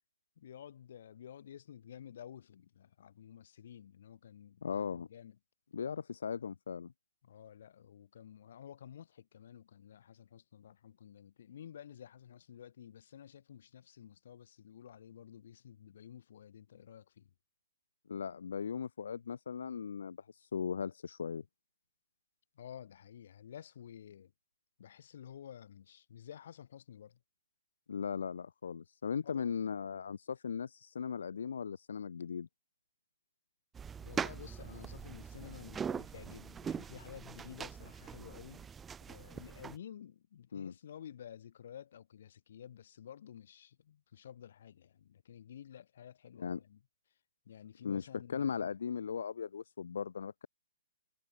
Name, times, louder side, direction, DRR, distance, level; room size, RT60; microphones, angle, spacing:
voice 1, 0.4-5.4 7.2-17.3 22.5-24.3 24.8-27.2 29.2-29.5 34.0-38.7 39.1-46.8 47.4-48.7, left 9 dB, 55° left, 6.5 m, -52 dB
voice 2, 4.6-5.1 5.7-6.9 18.1-21.4 27.9-32.5 40.5-40.7 46.4-46.6 47.8-50.5, left 6 dB, 75° left, 1.5 m, -38 dB
sound 1, 33.8-39.8, right 7 dB, 10° right, 0.8 m, -42 dB
hypercardioid pair, 160°, 0 cm